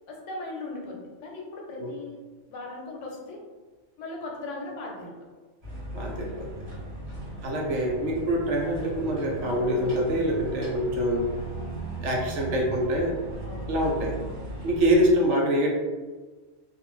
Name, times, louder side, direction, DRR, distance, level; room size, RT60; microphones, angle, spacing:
voice 1, 0.1-2.2 2.5-3.4 4.0-5.1 13.4-13.7, left 2 dB, 80° left, -1 dB, 1.0 m, -38 dB
sound 1, 5.6-15.1, right 1 dB, 30° right, 1.0 m, -37 dB
voice 2, 5.9-6.5 7.4-11.2 12.0-13.2 13.7-14.2 14.6-15.7, equal, 75° right, -1 dB, 0.9 m, -25 dB
2.5 x 2.1 x 3.0 m, 1.3 s
omnidirectional pair, 1.3 m